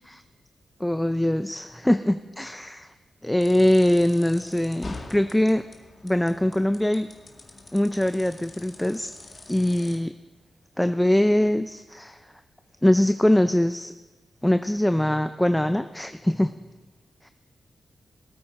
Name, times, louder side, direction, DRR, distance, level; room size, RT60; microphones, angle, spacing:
voice 1, 0.8-2.9 3.2-5.6 6.0-7.1 7.7-9.1 9.5-10.1 10.8-12.2 12.8-13.9 14.4-16.5, left 1 dB, 10° left, 10 dB, 0.5 m, -22 dB
sound 1, 3.4-10.0, left 3 dB, 50° left, 1.9 m, -45 dB
19.5 x 8.7 x 4.3 m, 1.2 s
supercardioid pair, 45°, 0 cm